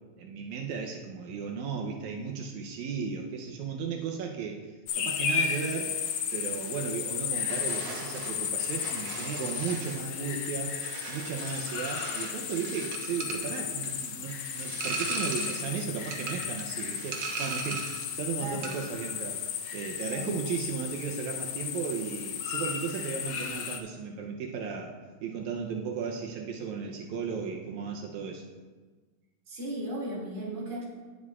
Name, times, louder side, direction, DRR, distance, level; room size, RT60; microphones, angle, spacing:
voice 1, 0.2-5.9 6.3-10.8 11.1-17.8 18.1-19.4 19.7-24.9 25.2-28.4, right 6 dB, 85° right, 1 dB, 2.1 m, -35 dB
sound 1, 4.9-23.8, left 8 dB, 80° left, 2.1 m, -34 dB
sound 2, 7.5-18.2 18.4-18.9, right 4 dB, 55° right, 1.7 m, -39 dB
voice 2, 20.0-20.4 29.5-30.9, right 1 dB, 40° right, -5 dB, 3.2 m, -36 dB
19.0 x 7.5 x 2.4 m, 1.4 s
omnidirectional pair, 3.3 m